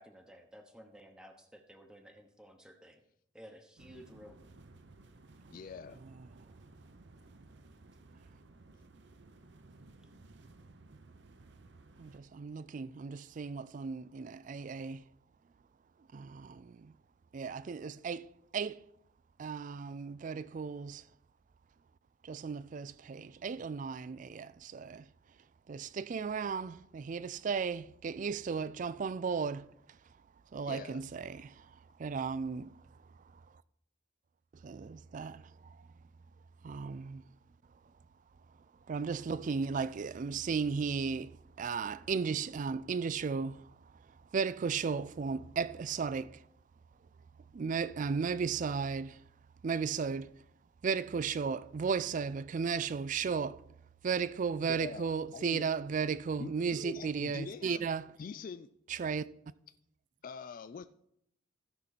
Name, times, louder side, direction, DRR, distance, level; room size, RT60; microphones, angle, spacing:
voice 1, 0.0-3.0 3.3-4.4, equal, 5° right, 1.0 m, -54 dB
sound 1, 3.8-12.2, right 2 dB, 65° right, 0.8 m, -57 dB
voice 2, 5.5-6.0 30.6-31.0 54.7-55.6 56.4-57.8 58.2-58.7 60.2-60.9, left 5 dB, 45° left, 0.3 m, -44 dB
voice 3, 12.0-15.0 16.1-16.9 17.3-18.8 19.4-21.0 22.2-25.0 25.7-29.7 30.5-31.7 32.0-32.7 34.6-35.8 36.6-37.2 38.9-43.7 44.3-46.4 47.5-49.2 49.6-50.3 50.8-53.6 54.0-58.1 58.9-59.3, right 5 dB, 40° right, 0.3 m, -35 dB
16.0 x 6.0 x 4.1 m
head